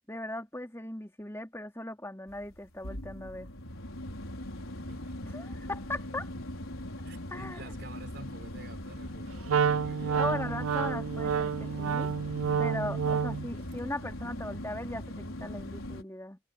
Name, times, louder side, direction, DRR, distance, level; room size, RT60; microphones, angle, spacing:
voice 1, 0.1-3.5 5.2-6.3 7.3-7.7 10.1-12.1 12.6-16.4, left 1 dB, 10° left, 4.1 m, -38 dB
sound 1, 2.3-16.0, left 1 dB, 80° left, 4.8 m, -40 dB
voice 2, 7.0-10.3, right 1 dB, 50° right, 5.4 m, -50 dB
Wind instrument woodwind instrument, 9.5-13.5, right 6 dB, 90° right, 0.4 m, -29 dB
head